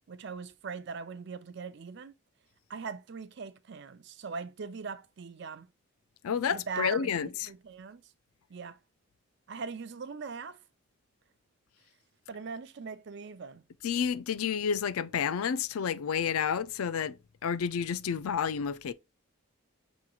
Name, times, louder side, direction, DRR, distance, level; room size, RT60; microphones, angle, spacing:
voice 1, 0.1-2.1 2.7-5.7 6.5-8.0 8.5-8.8 9.5-10.6 12.3-13.6, right 5 dB, 55° right, 0.5 m, -40 dB
voice 2, 6.2-7.5 13.8-17.2 17.4-18.9, left 7 dB, 85° left, 0.4 m, -30 dB
7.1 x 3.1 x 2.3 m
head